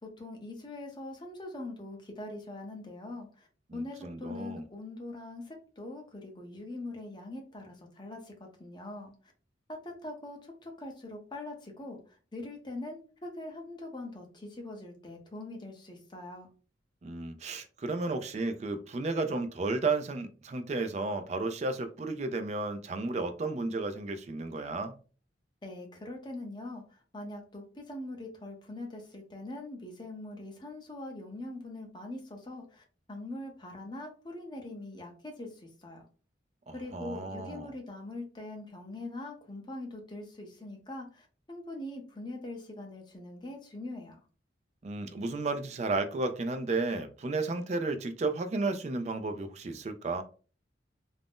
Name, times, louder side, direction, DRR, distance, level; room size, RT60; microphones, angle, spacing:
voice 1, 0.0-3.5 3.7-9.3 9.7-16.5 25.6-36.0 36.7-44.2, left 2 dB, 25° left, 0.6 m, -42 dB
voice 2, 3.7-4.6 17.0-24.9 36.7-37.7 44.8-50.2, right 3 dB, 35° right, 0.3 m, -33 dB
2.5 x 2.0 x 3.5 m
head